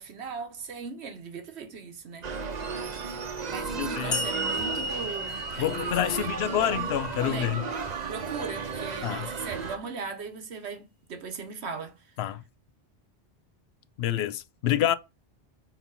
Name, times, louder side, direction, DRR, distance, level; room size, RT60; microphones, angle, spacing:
voice 1, 0.0-2.3 3.4-7.8 8.1-12.0, right 5 dB, 90° right, 1.3 m, -39 dB
sound 1, 2.2-9.8, right 5 dB, 45° right, 0.8 m, -34 dB
voice 2, 3.8-4.2 5.6-7.7 9.0-9.3 12.2-12.4 14.0-14.9, left 11 dB, 80° left, 0.8 m, -27 dB
sound 2, 4.1-7.5, equal, 40° left, 1.2 m, -34 dB
4.4 x 4.1 x 5.4 m
omnidirectional pair, 1.1 m